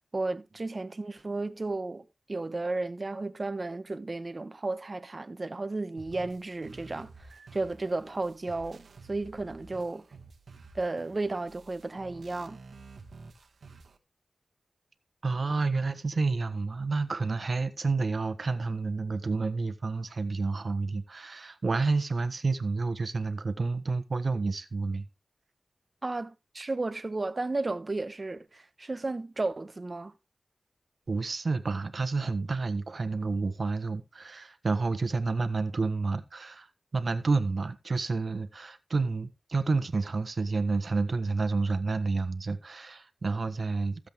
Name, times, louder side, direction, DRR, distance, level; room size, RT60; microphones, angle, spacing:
voice 1, 0.1-10.0 10.7-12.6 26.0-30.1, right 2 dB, 45° right, 1.2 m, -33 dB
sound 1, 6.0-14.0, right 3 dB, 85° right, 1.5 m, -51 dB
voice 2, 15.2-25.0 31.1-36.7 36.9-44.1, right 3 dB, 60° right, 1.3 m, -29 dB
15.5 x 7.8 x 3.5 m
wide cardioid pair, 60°, 0 cm